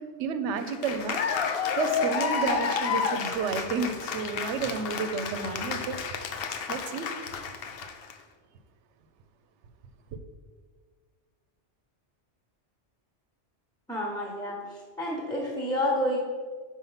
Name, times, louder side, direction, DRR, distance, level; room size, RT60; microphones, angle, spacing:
voice 1, 0.2-6.0 6.7-7.1, right 5 dB, 85° right, 8 dB, 0.9 m, -31 dB
Cheering / Applause, 0.6-8.1, left 6 dB, 65° left, 0.7 m, -30 dB
voice 2, 13.9-16.2, left 1 dB, 5° left, -2 dB, 1.0 m, -29 dB
5.7 x 4.5 x 5.6 m, 1.6 s
omnidirectional pair, 1.2 m